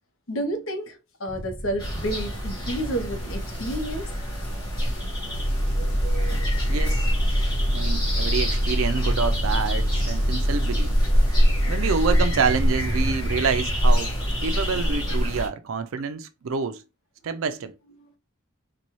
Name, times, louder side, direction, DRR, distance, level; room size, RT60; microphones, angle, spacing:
voice 1, 0.3-4.1, right 1 dB, 65° left, 0.9 m, -30 dB
sound 1, 1.3-14.0, right 1 dB, 10° right, 0.5 m, -38 dB
sound 2, 1.8-15.5, equal, 20° left, 1.7 m, -26 dB
Engine, 5.3-12.2, equal, 85° left, 1.1 m, -25 dB
voice 2, 6.7-7.1 7.7-10.9 11.7-14.1 14.4-16.8 17.2-17.7, right 5 dB, 70° right, 0.4 m, -27 dB
4.0 x 2.3 x 3.0 m
head